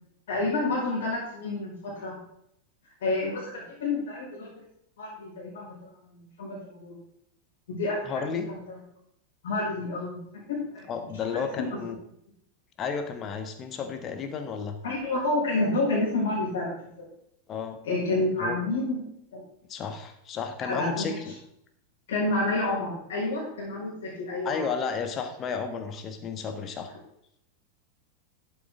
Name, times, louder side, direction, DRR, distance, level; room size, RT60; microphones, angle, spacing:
voice 1, 0.3-2.2 3.0-4.7 5.0-6.9 7.7-8.2 8.5-8.8 9.4-10.2 10.5-10.9 11.2-11.4 11.7-11.8 14.8-17.1 17.8-19.0 19.3-19.4 20.6-21.3 22.1-24.7, left 2 dB, 60° left, -9 dB, 5.0 m, -29 dB
voice 2, 8.0-8.5 10.9-12.0 12.8-14.8 17.5-17.8 18.4-18.6 19.7-21.3 24.4-26.9, left 6 dB, 30° left, 7 dB, 1.6 m, -32 dB
12.5 x 8.6 x 3.7 m, 0.75 s
figure-of-eight pair, 90°, 0 cm